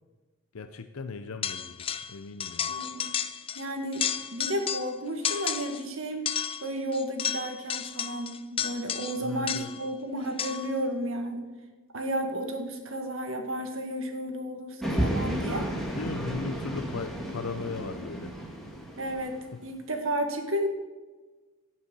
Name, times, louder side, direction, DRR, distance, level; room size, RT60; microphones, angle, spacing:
voice 1, 0.5-2.8 9.2-9.7 15.8-18.3, left 4 dB, 90° left, 8 dB, 0.7 m, -37 dB
sound 1, 1.4-2.1 2.4-3.6 3.9-4.9 5.2-5.8 6.3-9.9 10.4-10.8, left 8 dB, 25° left, 0.4 m, -32 dB
voice 2, 2.7-3.1 3.6-6.2 6.6-11.4 11.9-15.7 19.0-20.7, right 1 dB, 75° right, 4 dB, 1.9 m, -32 dB
sound 2, 14.8-19.5, right 1 dB, ahead, 1.8 m, -32 dB
17.0 x 6.4 x 5.5 m, 1.3 s
head